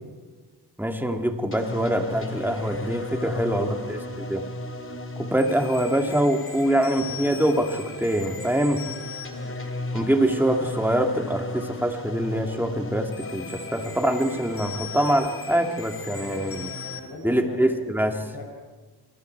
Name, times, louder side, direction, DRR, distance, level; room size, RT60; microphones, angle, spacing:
voice 1, 0.8-4.0 4.3-4.4 5.2-8.8 9.9-16.7 17.2-18.2, right 1 dB, 5° right, 4 dB, 2.2 m, -24 dB
sound 1, 1.5-17.0, left 2 dB, 30° left, 2.8 m, -35 dB
voice 2, 3.1-3.8 5.1-5.3 9.2-9.6 16.3-16.6 16.9-17.7 18.0-18.4, left 2 dB, 65° left, 1 dB, 6.0 m, -43 dB
28.5 x 22.0 x 4.6 m, 1.3 s
wide cardioid pair, 100°, 41 cm